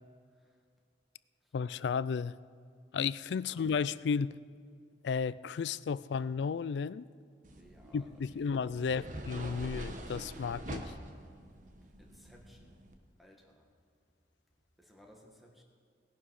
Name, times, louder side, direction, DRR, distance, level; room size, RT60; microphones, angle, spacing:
voice 1, 0.3-0.6 1.4-1.5 3.3-3.7 7.6-9.2 12.0-12.9 13.2-13.7 14.8-15.6, equal, ahead, 0 dB, 1.8 m, -60 dB
voice 2, 1.5-2.3 2.9-4.3 5.0-7.1 7.9-10.8, left 6 dB, 80° left, 18 dB, 0.4 m, -33 dB
sound 1, 7.4-12.9, right 1 dB, 45° right, 1.2 m, -45 dB
18.0 x 11.5 x 4.8 m, 2.3 s
head